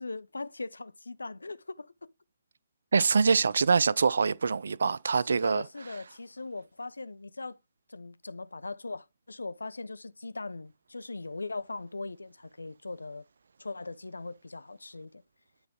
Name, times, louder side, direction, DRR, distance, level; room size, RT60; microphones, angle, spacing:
voice 1, 0.0-1.9 5.2-7.6 7.9-13.2 13.6-15.2, left 3 dB, 70° left, 0.5 m, -40 dB
voice 2, 2.9-5.6, right 5 dB, 55° right, 0.4 m, -24 dB
9.6 x 4.1 x 3.6 m
figure-of-eight pair, 135°, 0 cm